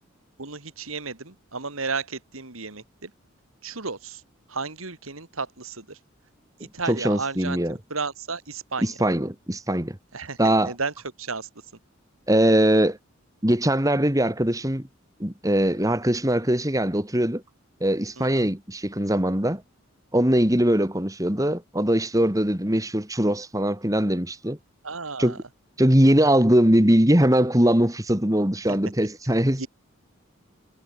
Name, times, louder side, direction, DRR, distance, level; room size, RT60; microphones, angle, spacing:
voice 1, 0.4-3.1 3.6-4.2 4.5-6.0 6.6-9.0 10.1-10.9 11.2-11.5 18.2-18.5 24.8-25.4 28.7-28.8 29.6-29.7, right 4 dB, 85° right, 3.0 m, -33 dB
voice 2, 6.6-7.8 8.8-10.0 10.4-10.7 12.3-13.0 13.4-14.9 15.2-17.4 17.8-19.6 20.1-24.6 25.2-25.3 25.8-29.7, right 1 dB, 15° right, 2.6 m, -21 dB
head